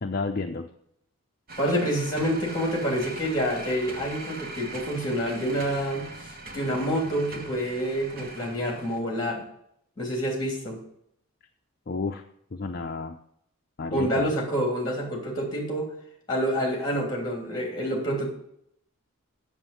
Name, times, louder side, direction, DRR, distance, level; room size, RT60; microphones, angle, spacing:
voice 1, 0.0-0.7 11.9-12.2 12.5-13.2 13.8-14.3, left 3 dB, 45° left, 5 dB, 0.5 m, -31 dB
sound 1, 1.5-9.0, right 2 dB, 40° right, 1.1 m, -41 dB
voice 2, 1.6-9.4 10.0-10.8 13.9-15.9 16.3-18.3, equal, 20° left, 1 dB, 3.1 m, -28 dB
7.4 x 7.0 x 7.8 m, 0.71 s
head